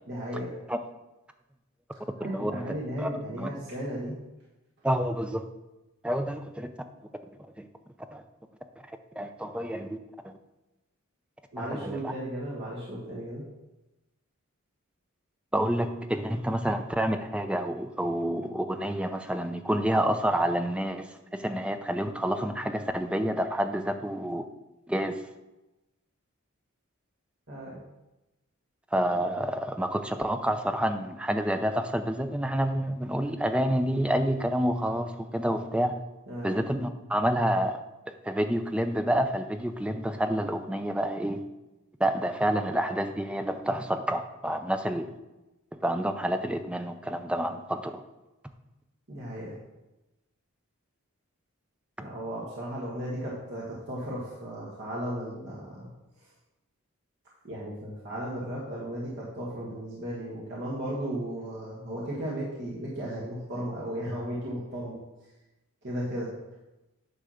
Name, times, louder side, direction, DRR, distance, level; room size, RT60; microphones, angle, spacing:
voice 1, 0.1-0.5 2.2-4.2 11.5-13.4 27.5-27.8 36.3-36.6 49.1-49.6 52.0-55.9 57.4-65.0 65.8-66.3, right 1 dB, 55° right, -7 dB, 1.7 m, -35 dB
voice 2, 2.3-2.6 3.0-3.1 3.4-3.5 4.8-5.5 6.0-6.7 7.6-7.7 8.1-8.2 9.2-10.0 10.2-10.3 11.6-12.1 15.5-24.5 24.9-25.2 28.9-36.0 36.4-37.8 38.2-41.4 42.0-45.1 45.8-47.9, right 1 dB, 5° right, 7 dB, 0.5 m, -28 dB
9.9 x 3.4 x 6.4 m, 1.0 s
head